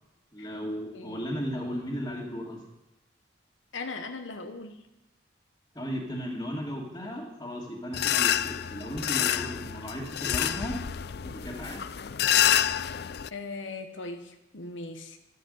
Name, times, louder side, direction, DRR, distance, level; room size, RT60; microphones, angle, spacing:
voice 1, 0.3-2.6 5.7-10.8 11.2-11.8, equal, 20° left, -7 dB, 2.4 m, -35 dB
voice 2, 3.7-4.8 13.3-15.2, left 3 dB, 80° left, 6 dB, 1.1 m, -39 dB
sound 1, 7.9-13.3, left 10 dB, 55° left, 0.4 m, -28 dB
13.0 x 10.5 x 8.6 m, 0.95 s
head